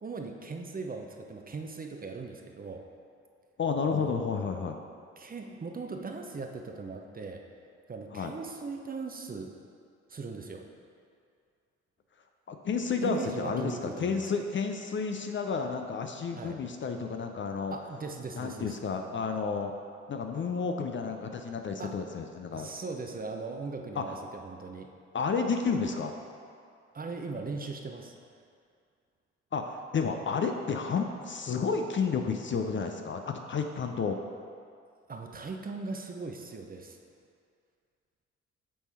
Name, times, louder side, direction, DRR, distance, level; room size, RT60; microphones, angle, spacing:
voice 1, 0.0-2.8 3.9-4.1 5.2-7.4 7.9-9.5 10.1-10.6 13.0-14.3 16.4-16.6 17.7-18.8 21.8-21.9 22.5-24.9 26.9-28.1 35.1-37.0, right 4 dB, 25° right, 3 dB, 0.7 m, -39 dB
voice 2, 3.6-4.8 8.1-8.3 12.5-17.8 18.3-19.7 20.1-22.7 24.0-24.1 25.1-26.2 29.5-34.2, left 5 dB, 35° left, 5 dB, 0.6 m, -31 dB
8.6 x 3.6 x 4.3 m, 2.3 s
hypercardioid pair, 45°, 34 cm